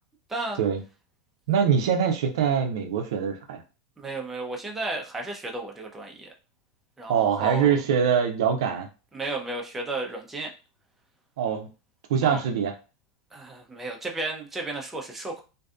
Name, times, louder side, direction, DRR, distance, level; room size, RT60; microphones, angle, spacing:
voice 1, 0.3-0.6 4.0-6.3 7.0-7.7 9.1-10.5 12.2-12.4 13.3-15.4, right 2 dB, 10° right, 1 dB, 0.5 m, -33 dB
voice 2, 1.5-3.6 7.1-8.9 11.4-11.7 12.1-12.7, right 7 dB, 75° right, 5 dB, 0.5 m, -23 dB
2.6 x 2.3 x 2.3 m, 0.32 s
supercardioid pair, 120°, 3 cm